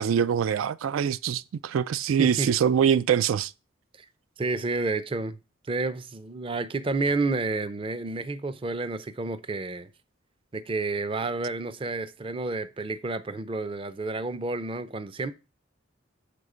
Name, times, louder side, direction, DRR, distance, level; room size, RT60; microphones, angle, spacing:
voice 1, 0.0-3.5, right 8 dB, 90° right, 0.3 m, -24 dB
voice 2, 2.2-2.5 4.0-4.1 4.4-5.4 5.7-9.9 10.5-15.3, right 3 dB, 25° right, 0.5 m, -30 dB
6.7 x 4.2 x 4.9 m
head